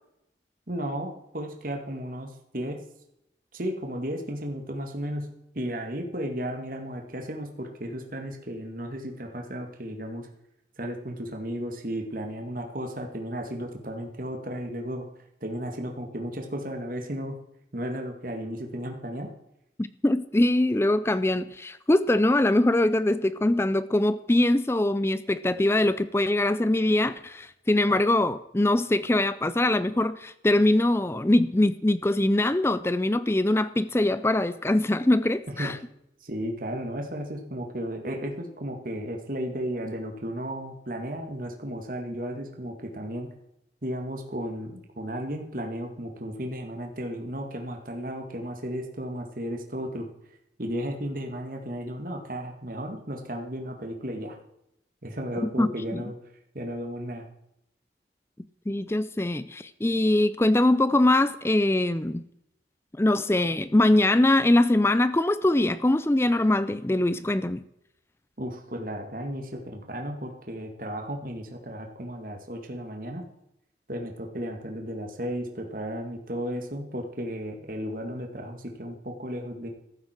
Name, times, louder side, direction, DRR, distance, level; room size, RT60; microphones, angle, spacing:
voice 1, 0.7-2.8 3.5-5.3 5.5-10.3 10.8-15.1 15.4-17.4 17.7-19.3 35.6-35.7 36.2-43.3 43.8-50.1 50.6-54.4 55.0-56.1 56.5-57.3 68.4-73.2 73.9-79.7, equal, 50° right, 2.0 m, -34 dB
voice 2, 19.8-35.8 55.4-56.0 58.7-62.2 63.0-67.6, left 1 dB, 15° left, 0.4 m, -23 dB
14.5 x 12.5 x 4.5 m
head